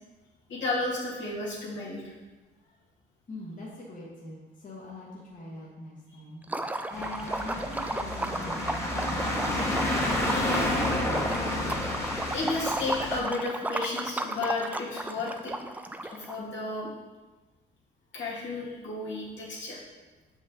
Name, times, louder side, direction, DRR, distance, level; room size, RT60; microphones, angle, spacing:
voice 1, 0.5-2.1 12.3-15.6 16.0-16.9 18.1-19.8, left 2 dB, 65° left, -6 dB, 2.3 m, -33 dB
voice 2, 3.3-10.3, left 1 dB, 40° left, -6 dB, 1.6 m, -43 dB
Liquid, 6.4-16.3, right 1 dB, 10° right, 0.4 m, -34 dB
sound 1, 6.9-13.2, left 1 dB, 15° left, 1.3 m, -30 dB
6.5 x 5.4 x 3.8 m, 1.2 s
cardioid pair, 90°, 20 cm